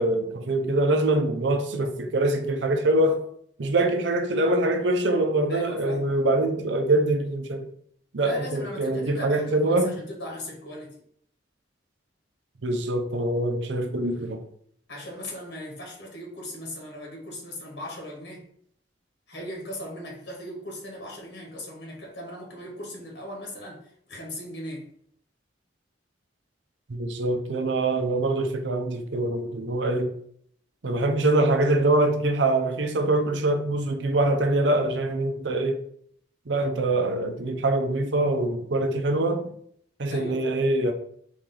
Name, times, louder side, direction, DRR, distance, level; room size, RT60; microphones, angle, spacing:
voice 1, 0.0-3.2 3.6-7.7 8.1-9.9 12.6-14.4 26.9-30.1 30.8-35.8 36.5-39.5 40.0-40.9, right 2 dB, 80° right, 0.6 m, -24 dB
voice 2, 5.5-6.0 8.2-11.0 14.9-18.5 19.3-24.9 40.1-40.5, equal, 80° left, 1.4 m, -38 dB
3.9 x 3.1 x 3.8 m
head